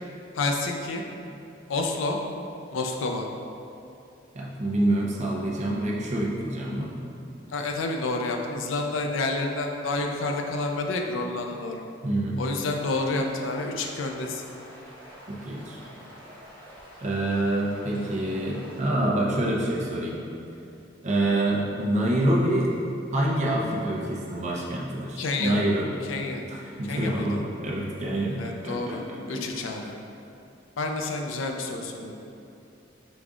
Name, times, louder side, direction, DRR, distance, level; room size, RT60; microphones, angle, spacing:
voice 1, 0.3-1.0 1.7-2.2 2.7-3.3 7.5-11.8 12.4-14.4 25.2-25.6 26.1-26.4 26.8-27.4 28.4-29.0 29.3-29.9 30.8-32.2, left 2 dB, 85° left, 3 dB, 0.4 m, -29 dB
voice 2, 4.3-6.9 12.0-12.4 15.3-15.8 17.0-20.2 21.0-22.7 23.1-26.0 26.5-29.4 29.8-29.9, right 1 dB, 40° right, -4 dB, 0.6 m, -26 dB
sound 1, 12.8-18.8, equal, 10° left, 1.0 m, -47 dB
5.1 x 2.4 x 3.6 m, 2.7 s
head